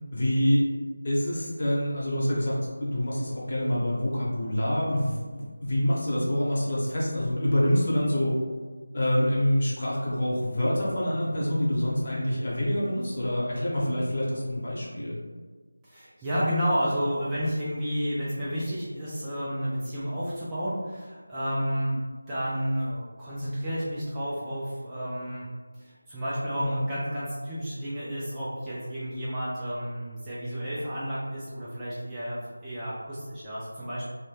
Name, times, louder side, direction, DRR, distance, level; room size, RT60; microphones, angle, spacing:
voice 1, 0.1-0.6 1.0-8.3 8.9-15.2 26.6-26.8, equal, 40° left, -5 dB, 0.7 m, -26 dB
voice 2, 15.8-22.0 22.3-25.5 25.7-34.1, equal, 10° right, -11 dB, 0.3 m, -31 dB
2.2 x 2.0 x 3.2 m, 1.4 s
figure-of-eight pair, 170°, 0 cm